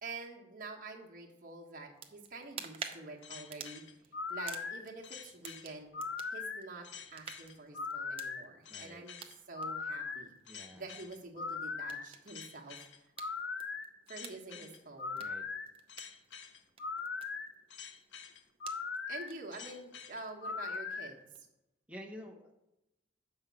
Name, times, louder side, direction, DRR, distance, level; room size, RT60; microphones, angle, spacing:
voice 1, 0.0-3.8 4.3-5.9 6.3-9.2 9.5-10.3 10.7-13.1 14.1-15.2 19.1-21.2, right 3 dB, 45° right, -1 dB, 1.4 m, -47 dB
sound 1, 1.9-21.5, right 7 dB, 30° right, 0.6 m, -53 dB
sound 2, 3.2-21.1, left 5 dB, 75° left, 0.7 m, -41 dB
voice 2, 8.7-9.0 10.5-10.8 15.2-15.4 21.9-22.5, equal, 5° right, 1 dB, 1.0 m, -49 dB
6.2 x 5.4 x 7.0 m, 0.91 s
head